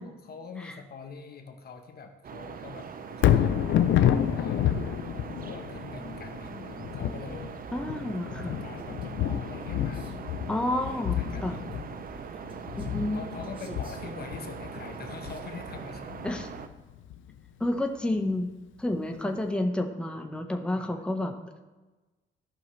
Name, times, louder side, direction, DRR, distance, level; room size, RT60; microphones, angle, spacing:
voice 1, 0.0-2.9 3.2-4.7 5.4-10.1 10.7-11.8 13.1-16.4 20.7-21.0, left 5 dB, 50° left, 5 dB, 1.1 m, -44 dB
sound 1, 2.2-16.7, right 6 dB, 45° right, 0.6 m, -41 dB
Thunder, 3.1-17.3 17.8-17.9, left 10 dB, 75° left, 0.5 m, -29 dB
voice 2, 7.7-8.6 10.5-11.6 12.8-13.2 13.7-13.8 16.2-16.5 17.6-18.5 18.8-21.3, left 1 dB, 5° left, 3 dB, 0.9 m, -30 dB
Male speech man speaking, 8.8-10.2 10.7-14.2 14.8-15.5, right 1 dB, 25° right, 1.4 m, -52 dB
14.5 x 5.6 x 3.2 m, 1.2 s
cardioid pair, 90°, 20 cm